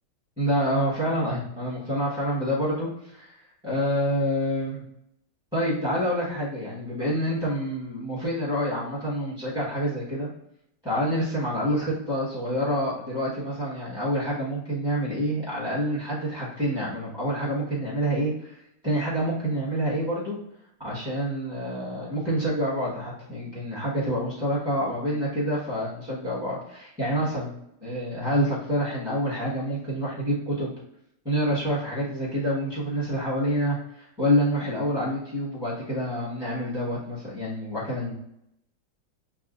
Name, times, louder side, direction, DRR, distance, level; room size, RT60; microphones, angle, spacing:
voice 1, 0.4-4.8 5.5-10.3 10.8-20.4 20.8-27.5 27.8-30.7 31.2-38.1, equal, 5° right, -8 dB, 0.9 m, -27 dB
6.9 x 2.5 x 2.5 m, 0.77 s
omnidirectional pair, 2.3 m